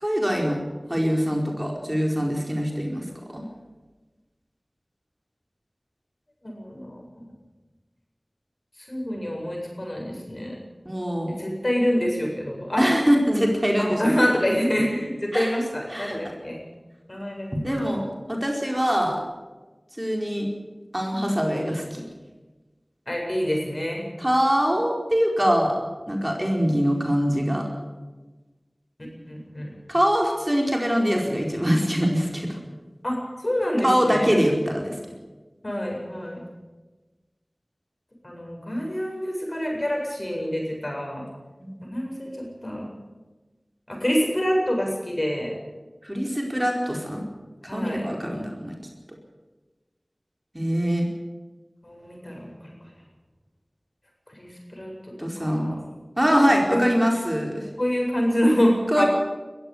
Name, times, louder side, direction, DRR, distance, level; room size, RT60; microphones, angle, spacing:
voice 1, 0.0-0.6 0.9-3.4 10.8-11.3 12.8-14.1 15.3-15.6 15.9-16.2 17.5-19.2 20.0-20.5 20.9-22.0 24.2-25.8 26.1-27.7 29.9-32.6 33.8-35.0 41.6-41.8 46.0-47.2 47.6-48.8 50.5-51.1 55.2-55.7 56.2-57.7 58.9-59.0, equal, 20° right, 0 dB, 4.7 m, -23 dB
voice 2, 6.4-7.3 8.8-10.6 11.3-12.9 13.8-16.6 17.1-17.9 23.1-24.1 29.0-29.7 33.0-34.4 35.6-36.4 38.2-41.2 41.8-42.9 43.9-45.5 47.6-48.3 51.8-52.7 54.3-55.8 56.7-57.0 57.8-59.1, equal, 45° left, 0 dB, 7.9 m, -26 dB
21.5 x 15.0 x 8.7 m, 1.2 s
wide cardioid pair, 45°, 0 cm